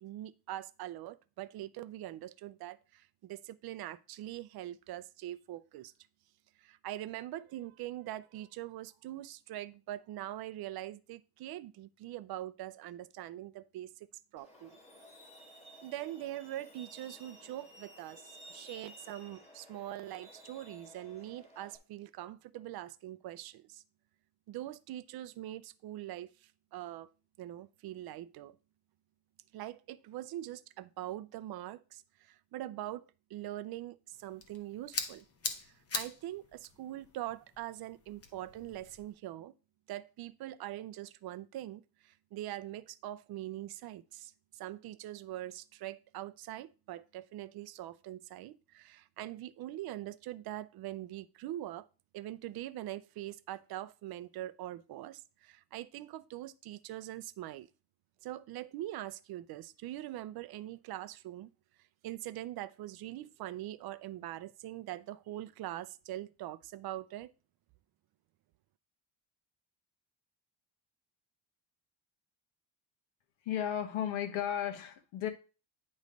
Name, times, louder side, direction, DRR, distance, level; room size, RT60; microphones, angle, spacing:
voice 1, 0.0-5.9 6.6-13.9 14.3-14.8 15.8-18.2 18.5-23.8 24.5-27.1 27.4-28.6 29.5-33.0 33.3-35.2 35.6-39.5 39.9-51.9 52.1-57.7 58.2-61.5 62.0-67.3, right 14 dB, 55° right, 0.5 m, -43 dB
Truck, 14.4-21.8, equal, 15° left, 1.7 m, -55 dB
sound 1, 34.1-39.1, left 4 dB, 30° left, 0.9 m, -43 dB
voice 2, 73.4-75.3, left 10 dB, 85° left, 1.3 m, -34 dB
9.5 x 3.2 x 5.1 m
cardioid pair, 160°, 46 cm